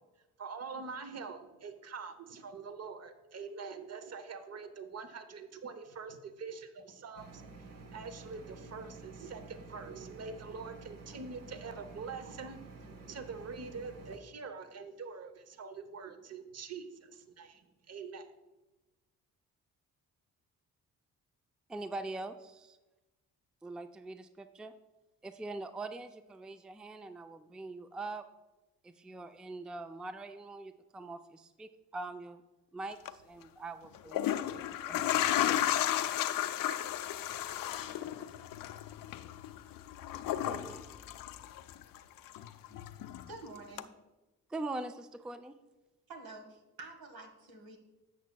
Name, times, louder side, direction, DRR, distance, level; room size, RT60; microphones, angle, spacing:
voice 1, 0.4-7.4 7.9-12.6 13.1-18.3, right 5 dB, 45° right, 9 dB, 0.8 m, -44 dB
sound 1, 7.2-14.2, right 3 dB, 60° right, 1.2 m, -50 dB
voice 2, 21.7-22.8 23.6-24.7 25.2-28.2 28.8-32.4 32.7-36.1 40.4-40.8 44.5-45.5, right 2 dB, ahead, 9 dB, 0.4 m, -43 dB
sound 2, 32.9-33.1 33.9-42.0 42.3-43.3 43.8-43.9, left 12 dB, 65° left, 0.5 m, -33 dB
voice 3, 43.2-43.9 46.1-47.8, right 3 dB, 75° right, 4 dB, 1.4 m, -48 dB
10.5 x 7.2 x 2.3 m, 1.1 s
supercardioid pair, 50°, 37 cm